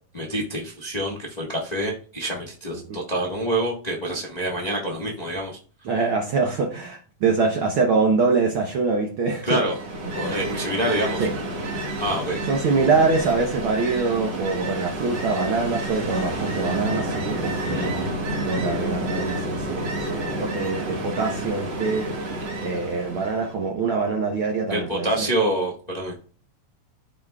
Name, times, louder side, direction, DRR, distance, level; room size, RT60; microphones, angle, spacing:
voice 1, 0.1-5.6 9.4-9.8 10.1-11.3 12.0-12.4 17.7-17.9 22.6-22.7 24.7-26.1, right 1 dB, 85° left, -3 dB, 0.3 m, -27 dB
voice 2, 5.8-9.6 10.2-10.3 11.2-11.3 12.5-18.1 18.5-22.3 22.6-25.3, right 4 dB, 85° right, 1 dB, 1.1 m, -24 dB
Ocean, 9.5-23.6, right 1 dB, 50° right, 1.3 m, -29 dB
14.0 x 5.0 x 2.4 m, 0.39 s
omnidirectional pair, 3.9 m